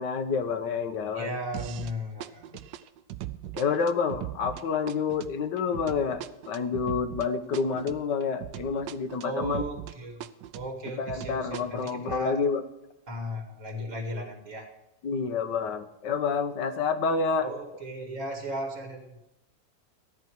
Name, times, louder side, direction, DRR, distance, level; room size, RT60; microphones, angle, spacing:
voice 1, 0.0-1.4 3.5-9.6 11.0-12.6 15.0-17.5, left 5 dB, 75° left, 9 dB, 1.7 m, -28 dB
voice 2, 1.1-2.6 9.2-10.2 10.5-12.4 13.1-14.7 17.4-19.2, equal, 45° right, 4 dB, 2.4 m, -36 dB
sound 1, 1.5-2.0 2.2-10.0 10.2-12.2, right 13 dB, 85° right, 1.3 m, -39 dB
14.5 x 11.0 x 4.6 m, 0.89 s
omnidirectional pair, 1.9 m